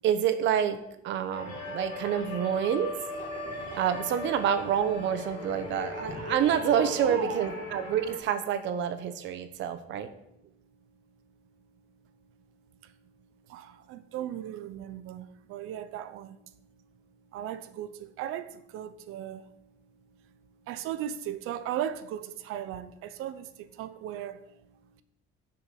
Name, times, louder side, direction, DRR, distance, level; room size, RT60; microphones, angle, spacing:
voice 1, 0.0-0.8 1.0-3.0 3.8-10.1, right 9 dB, 60° right, 1.0 m, -28 dB
sound 1, 1.3-8.2, left 2 dB, 35° left, 2.6 m, -38 dB
voice 2, 7.0-7.5 12.8-13.0 13.5-16.5 17.3-19.5 20.2-20.3 20.6-25.0, right 10 dB, 90° right, 0.8 m, -37 dB
9.4 x 6.8 x 5.9 m
cardioid pair, 180°, 21 cm